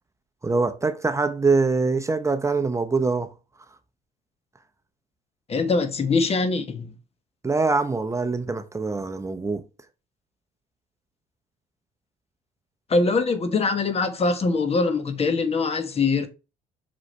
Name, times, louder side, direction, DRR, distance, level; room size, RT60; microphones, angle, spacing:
voice 1, 0.4-3.3 7.4-9.6, right 4 dB, 15° right, 0.8 m, -23 dB
voice 2, 5.5-6.9 12.9-16.3, left 3 dB, 40° left, 1.4 m, -23 dB
6.2 x 4.9 x 3.2 m
supercardioid pair, 75°, 17 cm